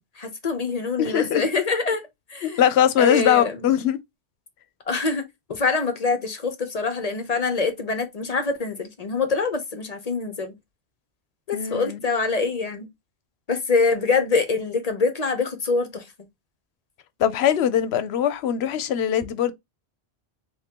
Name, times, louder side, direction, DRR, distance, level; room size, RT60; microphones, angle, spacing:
voice 1, 0.2-2.0 2.3-2.6 3.0-3.7 4.9-10.5 11.5-12.9 13.5-16.0, left 4 dB, 45° left, 0.6 m, -25 dB
voice 2, 1.0-1.4 2.4-4.0 11.5-12.0 17.2-19.5, left 10 dB, 75° left, 0.8 m, -21 dB
3.6 x 2.9 x 2.8 m
omnidirectional pair, 1.1 m